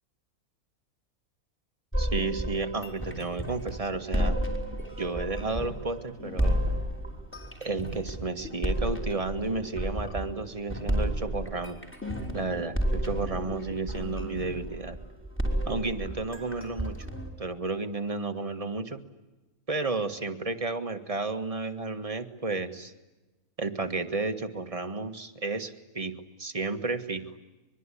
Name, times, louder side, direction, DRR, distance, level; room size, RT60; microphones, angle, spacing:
sound 1, 1.9-17.3, equal, 10° left, 4.4 m, -32 dB
voice 1, 2.0-4.4 5.0-6.6 7.6-11.8 12.3-15.0 15.7-16.9 17.4-19.0 19.7-22.9 23.6-27.2, right 3 dB, 25° right, 7 dB, 1.7 m, -32 dB
24.5 x 23.0 x 10.0 m, 1.1 s
omnidirectional pair, 1.6 m